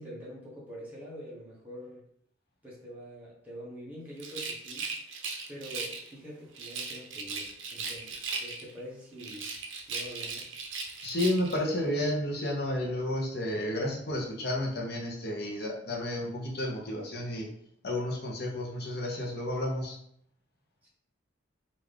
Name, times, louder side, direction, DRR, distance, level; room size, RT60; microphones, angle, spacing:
voice 1, 0.0-2.0 2.6-4.9 5.5-8.1 8.4-9.5 9.9-10.5, equal, 10° right, -6 dB, 1.0 m, -45 dB
Rattle, 4.2-6.1 6.5-8.8 9.2-11.6, right 4 dB, 70° right, 0.6 m, -38 dB
voice 2, 11.0-17.5 17.8-20.0, left 1 dB, 55° left, -1 dB, 0.8 m, -31 dB
3.5 x 2.6 x 3.3 m, 0.69 s
head